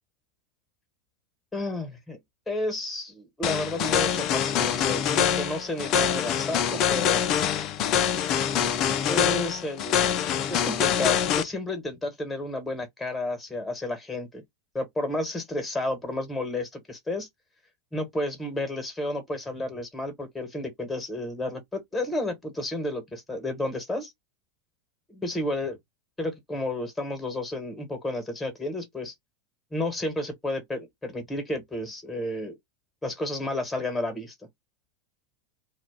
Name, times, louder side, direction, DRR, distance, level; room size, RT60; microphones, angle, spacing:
voice 1, 1.5-2.2 2.5-7.2 9.1-10.0 10.5-14.4 14.7-17.3 17.9-24.1 25.1-25.8 26.2-29.1 29.7-32.6 33.0-34.3, left 1 dB, 10° left, 1.4 m, -31 dB
sound 1, 3.4-11.4, left 9 dB, 45° left, 0.5 m, -25 dB
2.3 x 2.3 x 3.6 m
hypercardioid pair, 95°, 0 cm